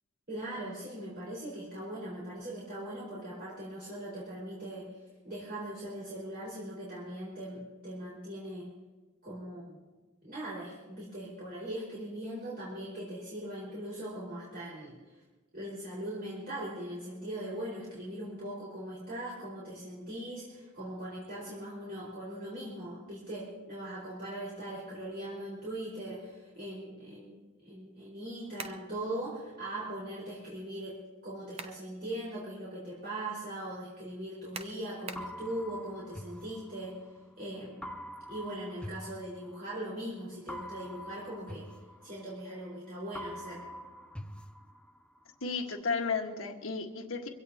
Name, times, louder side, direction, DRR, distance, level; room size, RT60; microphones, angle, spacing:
voice 1, 0.3-4.9 5.2-8.7 9.2-9.8 10.2-15.2 15.5-27.4 27.6-37.0 37.4-38.0 38.3-41.7 42.0-43.6, right 1 dB, 45° right, -8 dB, 4.8 m, -40 dB
sound 1, 28.6-28.9 31.2-31.9 32.3-32.4 34.5-35.4, right 4 dB, 30° right, 0.8 m, -43 dB
sound 2, 35.2-37.2 37.8-39.9 40.5-42.8 43.1-45.2, equal, 5° left, 0.5 m, -45 dB
voice 2, 45.4-47.3, left 4 dB, 65° left, 3 dB, 1.6 m, -33 dB
24.0 x 17.0 x 2.9 m, 1.2 s
head